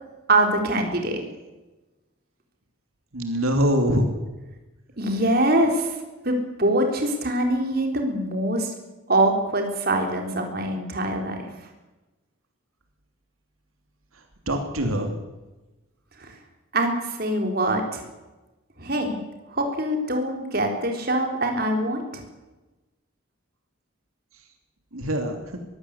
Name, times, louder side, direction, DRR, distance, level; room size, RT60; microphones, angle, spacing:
voice 1, 0.3-1.2 5.0-6.0 6.2-8.7 9.1-11.4 16.2-16.3 16.7-18.0 18.8-19.2 19.5-22.2, right 1 dB, 45° right, 3 dB, 3.8 m, -24 dB
voice 2, 3.1-4.1 14.5-15.1 24.9-25.4, equal, 85° right, 4 dB, 2.9 m, -23 dB
22.5 x 15.5 x 8.3 m, 1.1 s
head